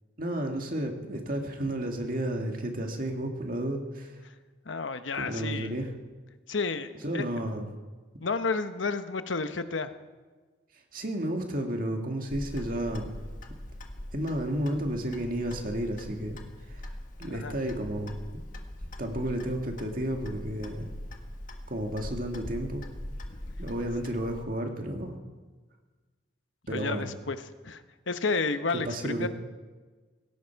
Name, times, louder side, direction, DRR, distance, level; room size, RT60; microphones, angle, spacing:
voice 1, 0.2-4.1 5.1-5.9 7.0-7.7 10.9-13.1 14.1-16.4 16.7-16.9 17.2-18.4 19.0-20.9 21.7-22.8 23.6-25.2 26.7-27.1 28.7-29.3, right 1 dB, 45° right, 3 dB, 2.1 m, -32 dB
voice 2, 4.7-5.7 6.5-7.2 8.2-9.9 17.3-17.5 26.7-27.4 27.6-27.8 28.1-29.3, left 4 dB, 85° left, 10 dB, 1.0 m, -31 dB
Clock, 12.3-24.4, left 1 dB, 45° left, 1.5 m, -42 dB
17.5 x 17.0 x 4.6 m, 1.3 s
head